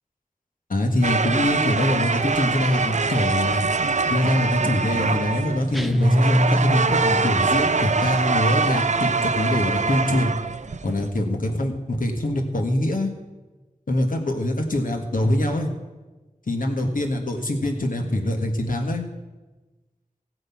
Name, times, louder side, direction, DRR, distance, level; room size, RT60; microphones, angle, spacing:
voice 1, 0.7-3.6 4.1-10.3 10.8-13.1 13.9-15.7 16.5-19.0, left 1 dB, 80° left, 3 dB, 1.7 m, -24 dB
sound 1, 1.0-11.1, right 4 dB, 60° right, 0.6 m, -24 dB
sound 2, 5.7-7.5, equal, ahead, 0.6 m, -22 dB
15.5 x 7.9 x 5.9 m, 1.2 s
wide cardioid pair, 55°, 14 cm